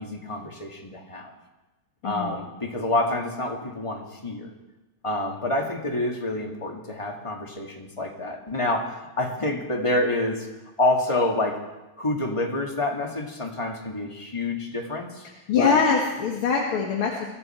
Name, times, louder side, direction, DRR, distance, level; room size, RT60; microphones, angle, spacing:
voice 1, 0.0-1.3 2.0-4.5 5.0-10.5 10.8-11.6 12.0-15.2 15.6-15.8, left 2 dB, 15° left, 1 dB, 1.3 m, -27 dB
voice 2, 2.0-2.4 15.5-17.2, left 5 dB, 50° left, -2 dB, 2.4 m, -23 dB
23.5 x 14.0 x 4.4 m, 1.1 s
omnidirectional pair, 3.3 m